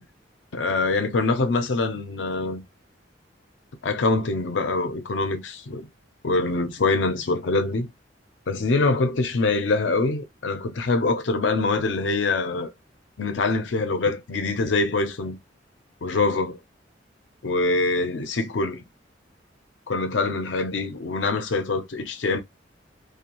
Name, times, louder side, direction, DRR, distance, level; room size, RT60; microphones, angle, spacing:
voice 1, 0.5-2.6 3.8-5.9 6.2-7.9 8.5-12.7 13.2-15.4 16.0-16.6 17.4-18.8 19.9-22.4, left 3 dB, 85° left, 0.6 m, -24 dB
2.6 x 2.2 x 2.8 m
head